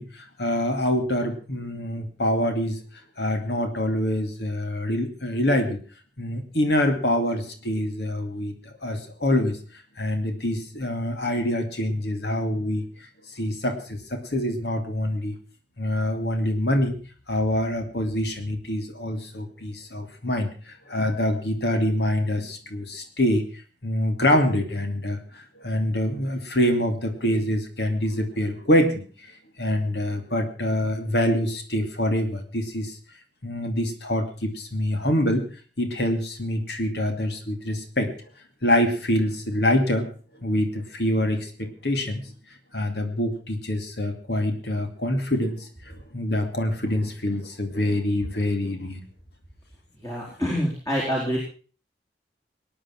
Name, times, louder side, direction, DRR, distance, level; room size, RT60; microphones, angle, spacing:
voice 1, 0.0-2.8 3.2-5.8 6.2-8.5 8.8-9.6 10.0-12.8 13.3-15.4 15.8-17.0 17.3-23.4 23.8-29.0 29.6-33.0 33.4-35.4 35.8-38.1 38.6-40.1 40.4-42.2 42.7-49.0, left 1 dB, 75° left, 5 dB, 2.6 m, -25 dB
voice 2, 50.0-51.4, equal, 20° left, -3 dB, 4.2 m, -26 dB
19.5 x 10.5 x 6.0 m, 0.39 s
head